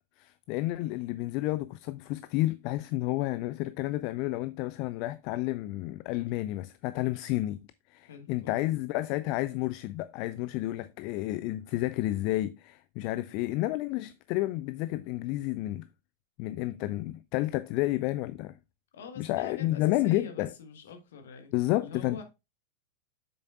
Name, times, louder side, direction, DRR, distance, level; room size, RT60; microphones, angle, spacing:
voice 1, 0.2-7.6 7.9-15.9 16.4-18.6 19.2-20.5 21.5-22.2, left 17 dB, 45° left, 0.3 m, -31 dB
voice 2, 8.0-8.6 18.9-21.5 21.8-22.2, left 5 dB, 60° left, 1.4 m, -45 dB
7.8 x 6.4 x 2.4 m
figure-of-eight pair, 90°, 0 cm